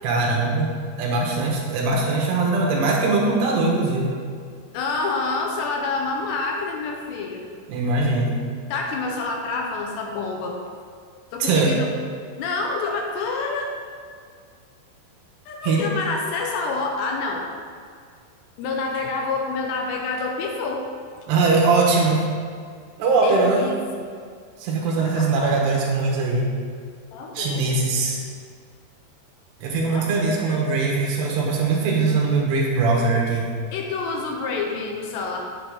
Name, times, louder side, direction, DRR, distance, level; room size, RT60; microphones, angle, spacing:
voice 1, 0.0-4.1 7.7-8.4 11.4-11.7 15.6-15.8 21.3-22.2 23.0-23.6 24.6-26.5 27.3-28.2 29.6-33.5, right 3 dB, 75° right, -2 dB, 3.1 m, -21 dB
voice 2, 4.7-7.5 8.7-10.6 11.3-11.9 12.4-13.7 15.5-17.5 18.6-20.9 21.2-21.3 23.2-23.8 24.9-25.6 27.1-27.9 29.8-30.8 33.7-35.4, left 3 dB, 80° left, 1 dB, 2.7 m, -28 dB
9.2 x 7.7 x 3.6 m, 2.1 s
omnidirectional pair, 5.2 m